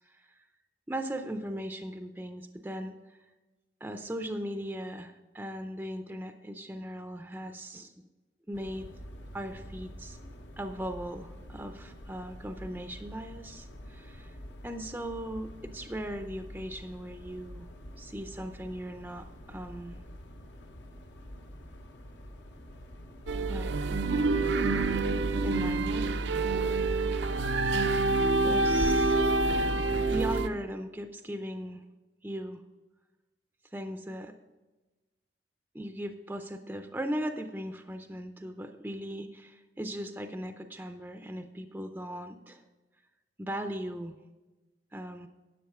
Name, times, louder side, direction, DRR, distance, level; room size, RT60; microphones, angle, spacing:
voice 1, 0.9-3.2 3.8-7.9 8.5-8.9 9.3-10.2 10.6-14.4 14.6-17.7 18.0-20.0 23.5-23.7 25.4-26.1 28.4-29.2 30.1-31.8 32.2-32.6 33.7-34.3 35.7-42.6 43.4-44.1 44.9-45.3, equal, 10° right, 6 dB, 0.5 m, -38 dB
sound 1, 8.5-27.4, equal, 75° left, 1.1 m, -47 dB
sound 2, 23.3-30.5, right 3 dB, 70° right, 0.5 m, -27 dB
10.5 x 7.0 x 4.8 m, 1.2 s
head